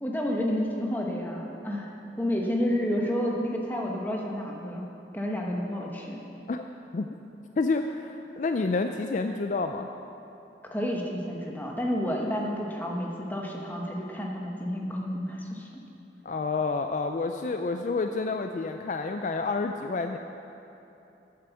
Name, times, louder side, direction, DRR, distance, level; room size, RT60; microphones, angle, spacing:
voice 1, 0.0-1.9 2.2-4.9 5.1-6.2 10.7-15.8, equal, 10° left, -1 dB, 1.1 m, -30 dB
voice 2, 7.6-9.9 16.2-20.2, left 3 dB, 45° left, 6 dB, 0.3 m, -29 dB
9.7 x 7.6 x 7.1 m, 2.9 s
head